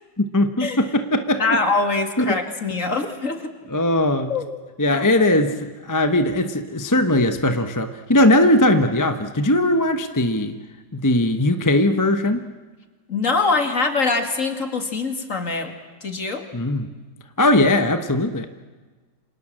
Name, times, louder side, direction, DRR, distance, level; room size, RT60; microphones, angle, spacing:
voice 1, 0.2-1.6 2.2-2.4 3.7-4.3 4.8-10.6 10.9-12.4 16.5-16.9 17.4-18.5, left 1 dB, 15° left, 7 dB, 0.9 m, -19 dB
voice 2, 1.4-3.5 4.3-4.5 4.9-5.1 13.1-15.7 16.0-16.4, left 3 dB, 45° left, 5 dB, 2.7 m, -23 dB
28.5 x 26.5 x 7.6 m, 1.3 s
omnidirectional pair, 2.0 m